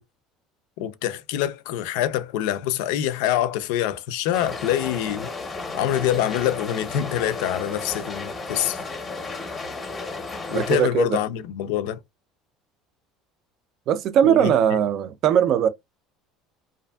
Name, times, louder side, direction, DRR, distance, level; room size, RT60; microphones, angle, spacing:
voice 1, 0.8-5.3 5.7-8.8 10.5-12.0 14.2-14.5, left 11 dB, 80° left, 0.4 m, -25 dB
sound 1, 4.3-10.8, left 3 dB, 20° left, 0.6 m, -33 dB
voice 2, 10.5-11.2 13.9-15.7, right 9 dB, 45° right, 0.4 m, -20 dB
2.5 x 2.4 x 2.2 m
cardioid pair, 145°, 0 cm